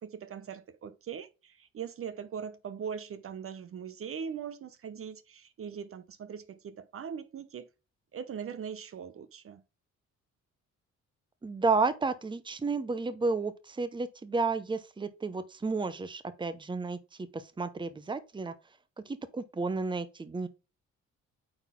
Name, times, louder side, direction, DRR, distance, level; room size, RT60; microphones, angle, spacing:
voice 1, 0.0-7.7 8.1-9.6, right 7 dB, 45° right, 0.7 m, -41 dB
voice 2, 11.4-18.5 19.0-20.5, right 4 dB, 15° right, 0.8 m, -32 dB
8.8 x 4.2 x 3.7 m
cardioid pair, 90°, 30 cm